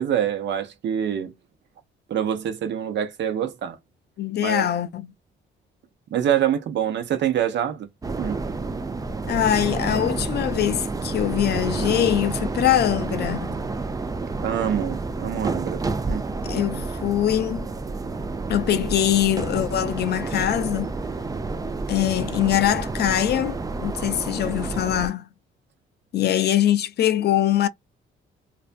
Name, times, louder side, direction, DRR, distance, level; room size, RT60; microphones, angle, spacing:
voice 1, 0.0-1.3 2.1-3.8 4.4-4.7 6.1-7.9 8.2-8.4 14.4-15.8 16.1-16.3, right 9 dB, 65° right, 0.7 m, -25 dB
voice 2, 4.2-5.1 9.3-13.6 16.4-17.7 18.5-20.9 21.9-25.2 26.1-27.7, left 11 dB, 55° left, 0.5 m, -23 dB
sound 1, 8.0-25.1, right 3 dB, 20° right, 0.4 m, -29 dB
2.5 x 2.2 x 2.5 m
cardioid pair, 90°, 20 cm